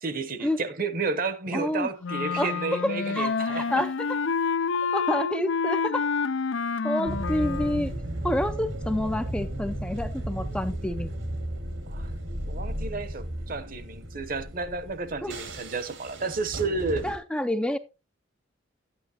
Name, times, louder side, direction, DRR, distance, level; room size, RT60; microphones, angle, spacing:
voice 1, 0.0-3.8 11.9-12.1 12.5-17.0, right 4 dB, 50° right, 0.9 m, -31 dB
voice 2, 1.5-1.9 2.4-4.2 4.9-6.1 6.8-7.9 8.2-11.1 15.2-15.4 17.0-17.8, left 1 dB, 5° left, 0.4 m, -28 dB
Wind instrument woodwind instrument, 2.0-7.9, left 5 dB, 80° left, 0.5 m, -28 dB
sound 1, 7.1-17.2, right 1 dB, 80° right, 2.0 m, -34 dB
11.5 x 9.1 x 2.9 m
head